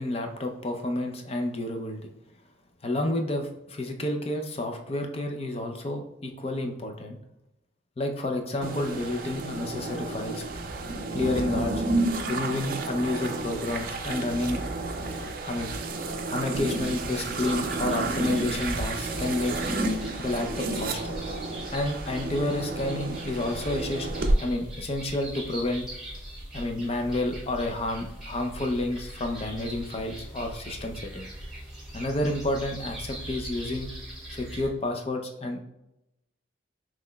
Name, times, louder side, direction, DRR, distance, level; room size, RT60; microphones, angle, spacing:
voice 1, 0.0-2.1 2.8-7.2 8.0-10.4 11.1-11.8 12.3-14.6 15.2-15.7 16.3-19.5 20.2-21.2 21.7-24.1 24.4-25.9 26.5-31.3 31.9-33.9 34.3-35.6, left 1 dB, 30° left, 4 dB, 0.5 m, -30 dB
sound 1, 8.6-24.4, right 2 dB, 50° right, 0.5 m, -31 dB
sound 2, 16.7-34.7, right 1 dB, ahead, 1.4 m, -41 dB
5.8 x 3.1 x 2.2 m, 0.88 s
head